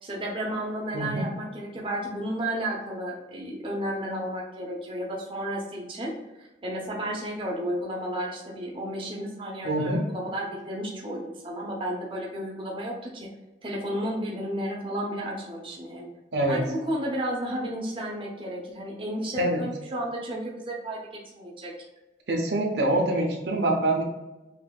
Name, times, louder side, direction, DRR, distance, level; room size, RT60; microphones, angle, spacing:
voice 1, 0.0-6.1 6.4-13.3 13.6-16.1 16.5-21.7, right 1 dB, 30° right, -2 dB, 0.7 m, -32 dB
voice 2, 0.9-1.3 9.6-10.0 16.3-16.6 19.4-19.6 22.3-24.0, right 1 dB, 75° right, 0 dB, 0.8 m, -25 dB
5.5 x 2.7 x 2.3 m, 1.0 s
head